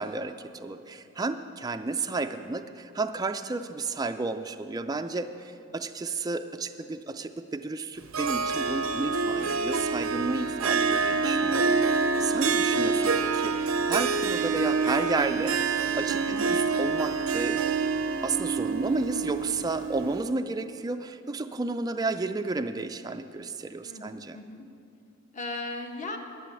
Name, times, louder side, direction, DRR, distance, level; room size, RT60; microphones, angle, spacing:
voice 1, 0.0-17.6 18.2-24.4, right 3 dB, 20° right, 8 dB, 0.3 m, -32 dB
Harp, 8.1-20.3, right 4 dB, 85° right, 0.6 m, -27 dB
voice 2, 23.8-24.6 25.3-26.2, left 2 dB, 35° left, 3 dB, 1.1 m, -37 dB
11.5 x 6.9 x 8.3 m, 2.6 s
head